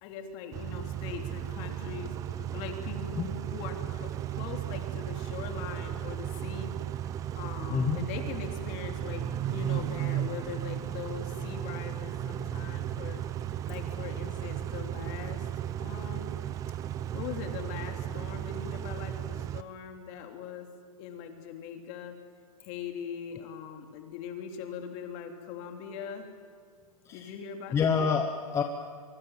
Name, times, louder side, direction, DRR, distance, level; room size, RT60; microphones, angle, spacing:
voice 1, 0.0-6.8 7.3-13.2 13.7-15.5 15.8-16.3 17.1-20.7 21.0-22.1 22.6-26.3 27.1-27.8, left 7 dB, 35° left, 4 dB, 3.3 m, -41 dB
Car / Idling / Accelerating revving vroom, 0.5-19.6, right 11 dB, 15° right, 0.6 m, -35 dB
voice 2, 7.7-8.0 27.0-27.3 27.7-28.6, left 6 dB, 15° left, 5 dB, 1.1 m, -27 dB
24.5 x 24.0 x 7.3 m, 2.1 s
hypercardioid pair, 150°, 19 cm